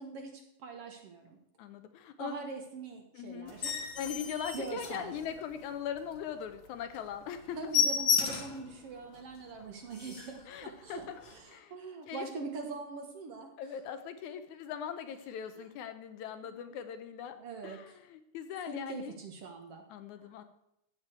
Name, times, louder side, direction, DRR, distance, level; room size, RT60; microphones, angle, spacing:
voice 1, 0.0-1.4 2.2-3.8 4.3-5.1 7.6-13.5 15.6-15.7 16.4-16.7 17.3-17.9 18.7-19.8 20.2-20.3, right 4 dB, 55° right, 4 dB, 1.9 m, -43 dB
voice 2, 1.6-2.4 3.1-3.5 4.0-7.7 10.5-11.2 11.5-11.8 12.1-12.3 13.6-17.4 17.6-19.2 19.9-20.4, left 8 dB, 75° left, 9 dB, 2.0 m, -40 dB
sound 1, 3.5-5.6 6.0-6.2 6.5-6.6 6.9-7.1 7.3-8.7 9.1-9.2 9.6-9.7 9.9-10.4 11.2-11.3, left 6 dB, 50° left, 1.7 m, -32 dB
15.0 x 8.4 x 4.6 m, 0.81 s
omnidirectional pair, 3.7 m